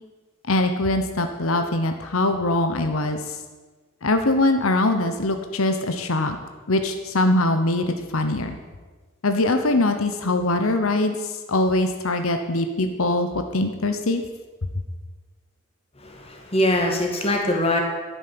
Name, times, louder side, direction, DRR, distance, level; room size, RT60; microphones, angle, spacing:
voice 1, 0.5-3.4 4.0-6.4 6.7-8.6 9.2-14.2, left 2 dB, 80° left, 7 dB, 1.0 m, -22 dB
voice 2, 16.0-17.8, left 1 dB, 30° left, 1 dB, 2.2 m, -22 dB
11.5 x 9.5 x 7.7 m, 1.3 s
head